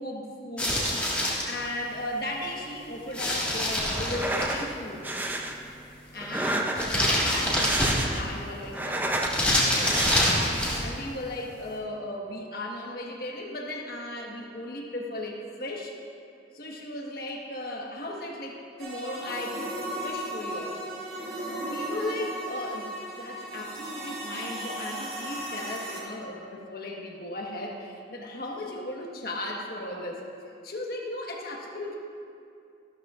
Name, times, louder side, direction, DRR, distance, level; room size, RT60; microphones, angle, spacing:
voice 1, 0.0-5.0 6.1-15.9 16.5-19.7 20.0-22.9 23.2-30.2 30.6-32.0, left 1 dB, 55° left, -1 dB, 1.4 m, -36 dB
sound 1, 0.6-1.5 3.1-4.6 6.8-8.3 9.2-10.9, left 1 dB, 5° left, 1.7 m, -26 dB
sound 2, 4.0-4.7 5.0-5.5 6.2-7.1 7.4-8.3 8.6-9.4 9.8-10.6, right 1 dB, 10° right, 0.5 m, -30 dB
sound 3, 18.8-26.0, right 1 dB, 55° right, 2.8 m, -36 dB
14.5 x 12.5 x 2.5 m, 2.5 s
head